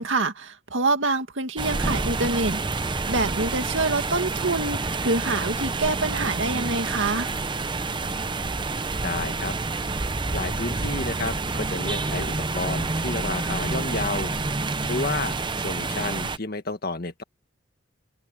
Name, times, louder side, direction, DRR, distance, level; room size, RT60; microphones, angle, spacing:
voice 1, 0.0-7.3, right 3 dB, 75° right, 2.1 m, -26 dB
sound 1, 1.6-16.4, right 3 dB, 25° right, 0.8 m, -28 dB
voice 2, 9.0-9.5 10.0-14.3 14.8-17.2, left 3 dB, 50° left, 1.7 m, -31 dB
head